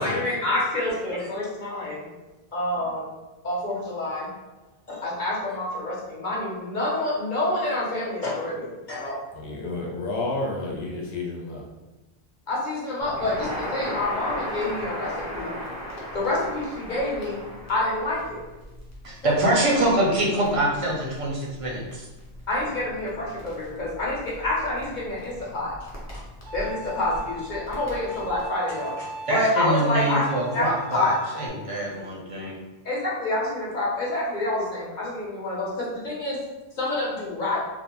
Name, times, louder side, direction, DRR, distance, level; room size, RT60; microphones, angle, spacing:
voice 1, 0.0-2.1 2.5-3.1 3.4-4.3 4.9-9.2 12.5-15.5 16.1-17.4 17.7-18.4 19.2-19.3 22.5-25.7 26.5-30.2 30.5-31.1 32.8-36.4 36.8-37.6, left 2 dB, 50° left, -6 dB, 0.8 m, -27 dB
voice 2, 9.3-11.6, left 2 dB, 90° left, -2 dB, 0.9 m, -30 dB
Crackle, 13.0-28.5, equal, 20° left, 0.5 m, -38 dB
voice 3, 19.0-22.1 29.3-32.6, right 1 dB, 45° right, -3 dB, 0.5 m, -24 dB
Bowed string instrument, 26.5-31.5, right 1 dB, 80° right, 0.8 m, -40 dB
2.4 x 2.1 x 2.9 m, 1.1 s
omnidirectional pair, 1.1 m